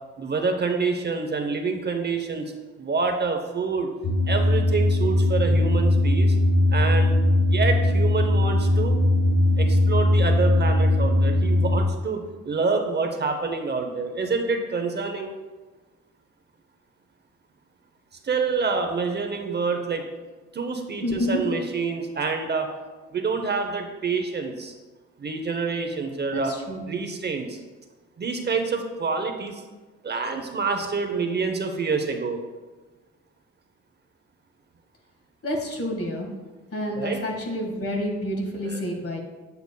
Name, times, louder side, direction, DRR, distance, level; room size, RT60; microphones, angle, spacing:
voice 1, 0.2-2.5 2.8-3.9 4.3-6.4 6.7-7.1 7.5-9.0 9.6-15.3 18.2-20.1 20.5-22.7 23.1-24.7 25.2-26.5 26.9-27.6 28.2-29.6 30.0-32.4 37.0-37.2 38.6-38.8, right 4 dB, 35° right, 4 dB, 0.7 m, -27 dB
sound 1, 4.0-11.8, left 1 dB, 80° left, 1.5 m, -20 dB
voice 2, 21.0-21.4 26.3-26.8 35.4-36.3 36.7-39.2, left 1 dB, 50° left, 1 dB, 1.7 m, -28 dB
8.1 x 6.8 x 2.2 m, 1.3 s
cardioid pair, 90°, 30 cm